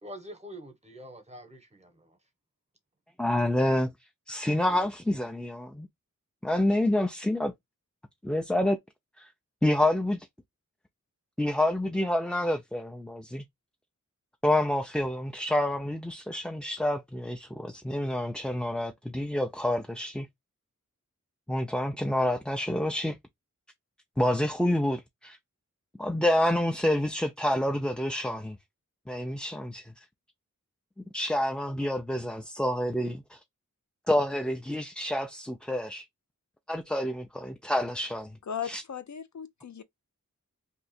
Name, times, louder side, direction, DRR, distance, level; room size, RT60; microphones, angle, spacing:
voice 1, 0.0-2.2, equal, 20° right, 1.0 m, -45 dB
voice 2, 3.2-3.9 4.3-5.9 6.4-7.5 8.2-8.8 9.2-9.3 9.6-10.2 11.4-13.4 14.4-20.3 21.5-23.2 24.2-25.4 26.0-28.6 29.1-29.9 31.1-33.4 34.1-36.0 36.7-38.4 38.7-38.8, left 1 dB, 5° left, 0.4 m, -28 dB
voice 3, 38.5-39.8, left 8 dB, 60° left, 0.5 m, -37 dB
2.7 x 2.4 x 4.1 m
wide cardioid pair, 55°, 32 cm